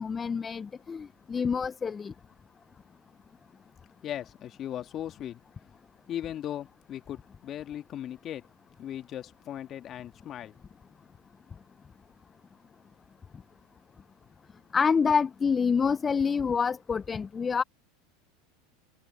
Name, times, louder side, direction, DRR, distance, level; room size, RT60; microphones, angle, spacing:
voice 1, 0.0-2.1 14.7-17.6, left 6 dB, 25° left, 0.7 m, -27 dB
voice 2, 4.0-5.4 6.1-8.5 8.8-10.5, left 11 dB, 40° left, 2.2 m, -38 dB
hypercardioid pair, 95°, 0 cm